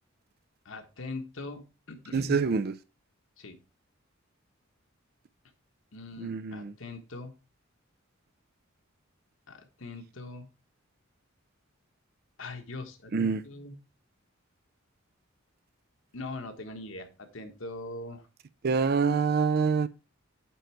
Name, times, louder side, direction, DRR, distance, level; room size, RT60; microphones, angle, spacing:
voice 1, 0.6-2.4 3.4-3.6 5.9-7.3 9.5-10.5 12.4-13.8 16.1-18.3, left 2 dB, 65° left, 1.4 m, -41 dB
voice 2, 2.1-2.7 6.2-6.7 13.1-13.4 18.6-19.9, right 5 dB, 50° right, 0.4 m, -26 dB
9.2 x 4.0 x 4.6 m
head